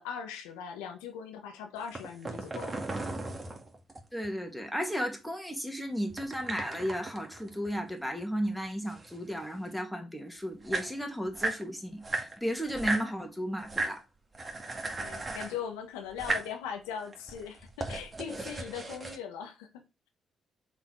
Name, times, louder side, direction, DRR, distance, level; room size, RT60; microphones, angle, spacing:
voice 1, 0.0-2.8 15.0-20.1, left 8 dB, 85° left, 1.2 m, -40 dB
sound 1, 1.8-4.3 6.1-8.2 8.5-9.7 10.3-10.4 10.5-11.6 12.0-13.1 13.6-14.0 14.3-15.6 16.1-16.5 17.1-19.2, right 2 dB, 30° right, 2.3 m, -36 dB
voice 2, 4.1-14.0, equal, ahead, 2.4 m, -34 dB
7.0 x 4.1 x 4.7 m
hypercardioid pair, 50°, 0 cm